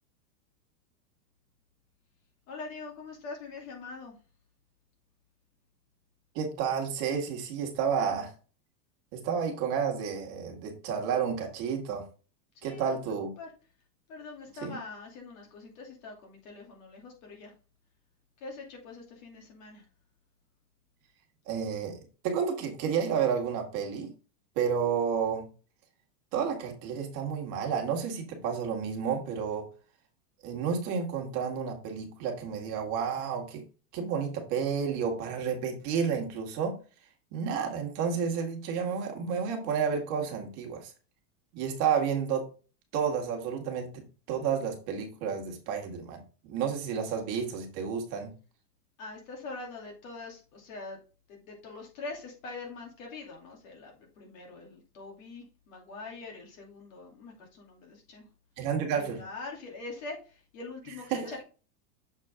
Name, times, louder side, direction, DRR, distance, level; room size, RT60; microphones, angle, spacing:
voice 1, 2.5-4.2 12.6-13.0 13.4-13.5 14.1-17.5 18.4-19.8 49.0-51.0 51.3-58.3 59.0-61.4, left 3 dB, 55° left, 0 dB, 2.9 m, -43 dB
voice 2, 6.4-8.3 9.1-12.0 12.6-13.3 14.6-14.8 21.5-24.1 24.6-25.4 26.3-29.6 30.4-33.6 33.9-36.7 37.3-40.9 41.5-42.5 42.9-48.3 58.6-59.2 61.1-61.3, right 7 dB, 40° right, 2 dB, 1.8 m, -31 dB
7.1 x 4.4 x 3.6 m, 0.35 s
supercardioid pair, 160°, 47 cm